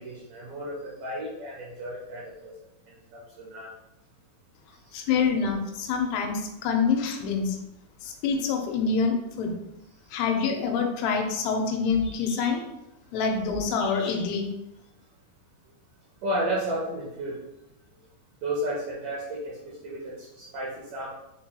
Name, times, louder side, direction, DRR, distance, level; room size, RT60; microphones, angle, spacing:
voice 1, 0.0-2.5 3.1-3.7 4.9-5.0 16.2-17.4 18.4-21.1, right 1 dB, 80° right, -5 dB, 1.9 m, -33 dB
voice 2, 4.9-7.6 8.0-9.5 10.1-12.6 13.1-14.5, left 5 dB, 90° left, 3 dB, 2.6 m, -26 dB
6.8 x 2.8 x 2.2 m, 0.90 s
omnidirectional pair, 4.6 m